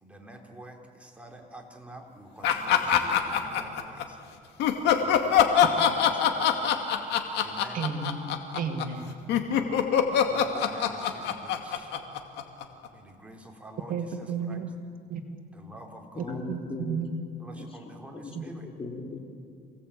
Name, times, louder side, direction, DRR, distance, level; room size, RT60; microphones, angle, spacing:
voice 1, 0.0-4.2 5.0-6.8 7.4-7.8 9.0-9.1 10.2-11.9 12.9-14.7 15.5-16.4 17.4-18.6, right 1 dB, 5° right, 1 dB, 3.9 m, -47 dB
sound 1, 2.4-4.0 4.6-12.9, left 9 dB, 85° left, 2.3 m, -23 dB
voice 2, 7.7-9.1 13.9-14.7 15.1-15.2 16.5-17.1 18.4-18.5, right 6 dB, 55° right, 4 dB, 2.4 m, -33 dB
voice 3, 16.1-17.0 17.5-18.4 18.6-19.2, left 3 dB, 35° left, 2 dB, 3.8 m, -38 dB
27.5 x 18.0 x 8.7 m, 2.2 s
cardioid pair, 110°, 17 cm